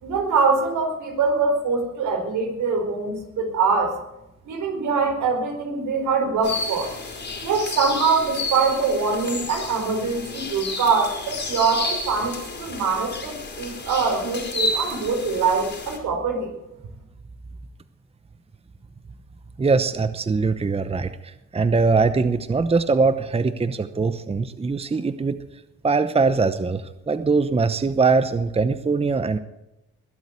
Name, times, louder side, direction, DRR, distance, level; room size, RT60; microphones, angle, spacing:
voice 1, 0.0-3.9 4.5-6.9 7.4-16.5, right 4 dB, 80° right, 3 dB, 4.8 m, -23 dB
sound 1, 6.4-16.0, left 2 dB, 35° left, 4.4 m, -31 dB
voice 2, 19.6-25.4 25.8-29.4, right 4 dB, 20° right, 11 dB, 0.8 m, -22 dB
21.0 x 8.0 x 8.1 m, 0.91 s
cardioid pair, 90°, 30 cm